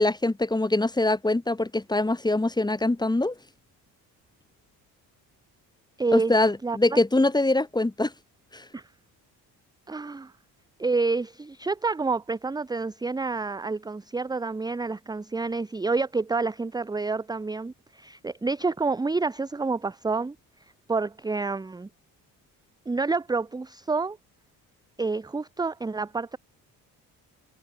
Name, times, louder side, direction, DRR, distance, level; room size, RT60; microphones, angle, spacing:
voice 1, 0.0-3.3 6.1-8.1 8.5-8.6, left 2 dB, 10° left, 1.3 m, -23 dB
voice 2, 6.0-6.3 6.6-7.0 8.7-8.8 9.9-10.3 10.8-20.4 20.9-21.9 22.9-24.2 25.0-26.4, right 3 dB, 10° right, 0.6 m, -28 dB
supercardioid pair, 65°, 39 cm